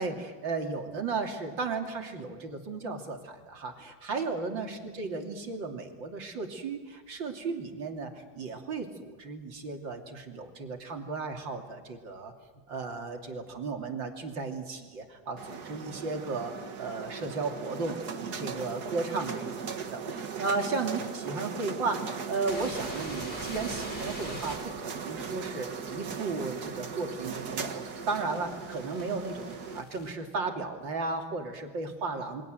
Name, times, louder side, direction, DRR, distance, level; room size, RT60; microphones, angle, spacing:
voice 1, 0.0-12.3 12.7-32.4, right 3 dB, 75° right, 4 dB, 3.6 m, -35 dB
sound 1, 15.4-29.8, right 5 dB, 55° right, 2.2 m, -38 dB
sound 2, 22.5-30.1, left 1 dB, 25° left, 5.9 m, -46 dB
28.5 x 24.0 x 7.9 m, 1.5 s
omnidirectional pair, 2.1 m